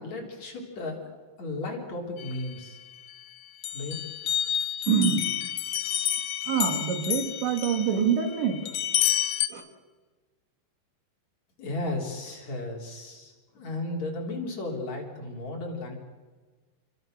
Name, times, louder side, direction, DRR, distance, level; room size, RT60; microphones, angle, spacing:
voice 1, 0.0-2.8 3.7-3.9 11.6-16.0, left 2 dB, 40° left, 0 dB, 4.6 m, -35 dB
sound 1, 2.2-3.2 3.6-9.5, left 11 dB, 85° left, 1.8 m, -30 dB
voice 2, 4.9-5.3 6.5-9.1 9.5-9.6, right 7 dB, 90° right, 5 dB, 4.6 m, -26 dB
28.5 x 23.0 x 6.7 m, 1.4 s
omnidirectional pair, 5.0 m